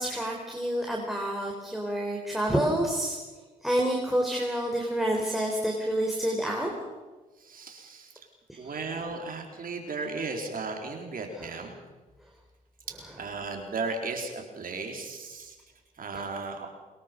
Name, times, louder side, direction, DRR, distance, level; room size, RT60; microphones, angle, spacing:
voice 1, 0.0-3.2 3.6-6.7 8.5-8.8, right 1 dB, ahead, 0 dB, 4.5 m, -28 dB
voice 2, 7.4-8.1 8.6-11.8 13.2-15.6 16.0-16.7, right 3 dB, 55° right, 3 dB, 4.3 m, -35 dB
24.5 x 21.0 x 5.4 m, 1.3 s
hypercardioid pair, 45°, 18 cm